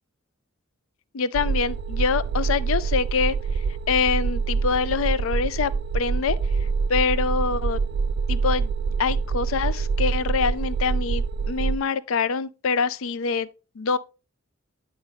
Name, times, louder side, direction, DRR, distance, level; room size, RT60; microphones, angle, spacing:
voice 1, 1.1-3.4 3.9-6.4 6.9-7.8 8.3-8.7 9.0-13.5 13.8-14.0, left 5 dB, 75° left, 0.4 m, -25 dB
sound 1, 1.3-11.8, right 5 dB, 55° right, 0.3 m, -25 dB
10.5 x 4.5 x 3.4 m
head